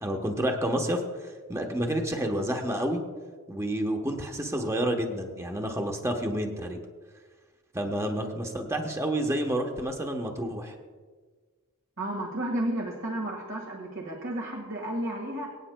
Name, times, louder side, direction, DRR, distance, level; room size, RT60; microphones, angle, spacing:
voice 1, 0.0-3.0 3.5-6.8 7.7-10.7, right 1 dB, 15° right, 3 dB, 1.0 m, -29 dB
voice 2, 12.0-15.5, right 1 dB, 60° right, 0 dB, 1.7 m, -32 dB
24.0 x 9.1 x 2.2 m, 1.4 s
head